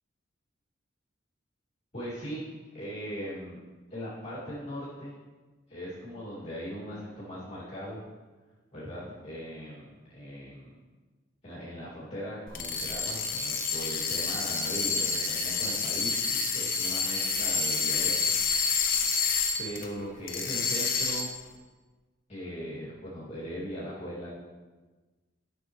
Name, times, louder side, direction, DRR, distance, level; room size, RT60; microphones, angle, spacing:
voice 1, 1.9-2.4 2.7-3.6 3.9-5.2 5.7-8.0 8.7-10.7 11.4-18.5 18.9-19.2 19.6-21.3 22.3-24.3, equal, 35° left, -8 dB, 2.4 m, -39 dB
sound 1, 12.5-19.9 20.3-21.5, left 5 dB, 50° left, 0.9 m, -29 dB
12.5 x 6.4 x 3.1 m, 1.3 s
head